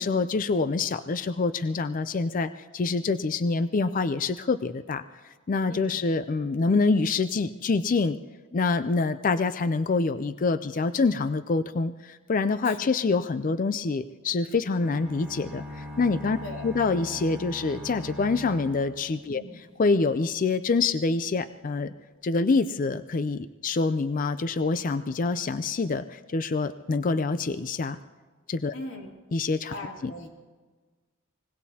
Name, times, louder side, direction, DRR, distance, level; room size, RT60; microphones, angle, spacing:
voice 1, 0.0-5.0 5.5-8.2 8.5-16.4 16.6-21.9 22.2-28.0 28.5-28.7 29.3-29.7 30.0-30.1, left 3 dB, 40° left, 12 dB, 0.4 m, -26 dB
voice 2, 5.6-6.0 12.6-12.9 16.4-16.6 19.3-19.6 28.7-29.1 29.7-30.3, left 1 dB, 65° left, 0 dB, 2.8 m, -40 dB
sound 1, 14.8-19.8, left 1 dB, 5° right, 2.4 m, -41 dB
25.0 x 20.5 x 2.8 m, 1.4 s
head